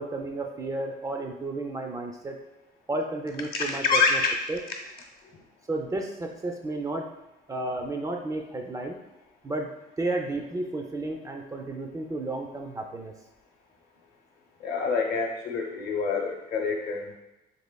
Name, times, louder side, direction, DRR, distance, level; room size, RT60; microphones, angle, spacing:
voice 1, 0.0-2.4 2.9-4.2 4.5-4.6 5.7-7.1 7.5-9.0 9.4-9.7 10.0-13.1, right 2 dB, 20° right, 3 dB, 0.3 m, -32 dB
voice 2, 3.5-4.3 14.6-17.1, left 5 dB, 65° left, 2 dB, 0.7 m, -26 dB
4.1 x 2.9 x 2.2 m, 1.0 s
cardioid pair, 110°, 17 cm